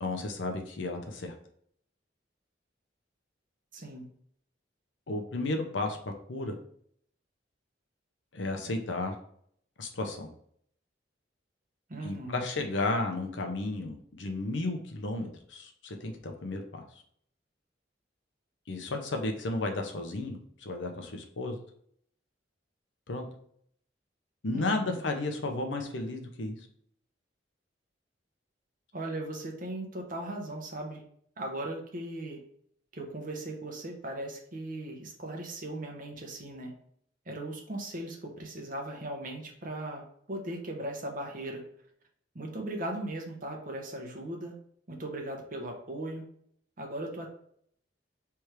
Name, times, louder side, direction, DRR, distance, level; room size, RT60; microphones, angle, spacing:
voice 1, 0.0-1.3 5.1-6.0 6.3-6.6 8.3-9.2 9.8-10.3 12.0-16.8 18.7-21.6 23.1-23.2 24.4-26.6, left 2 dB, 80° left, 4 dB, 0.8 m, -33 dB
voice 2, 3.7-4.1 11.9-12.4 24.5-25.0 28.9-31.0 31.4-32.4 32.9-36.7 37.3-41.6 42.3-44.5 44.9-46.2 46.8-47.3, right 1 dB, 50° right, 1 dB, 1.0 m, -38 dB
3.5 x 3.2 x 4.5 m, 0.64 s
head